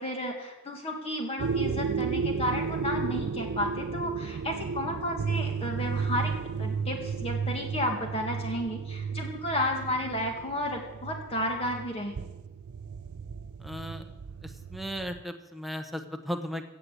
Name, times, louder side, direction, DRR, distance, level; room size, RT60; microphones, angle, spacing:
voice 1, 0.0-6.3 6.6-12.1, left 1 dB, 30° left, 2 dB, 1.8 m, -32 dB
sound 1, 1.4-15.2, right 5 dB, 85° right, 0.5 m, -33 dB
voice 2, 13.6-14.1 14.4-16.7, equal, ahead, 5 dB, 1.0 m, -36 dB
16.5 x 7.9 x 8.0 m, 1.0 s
head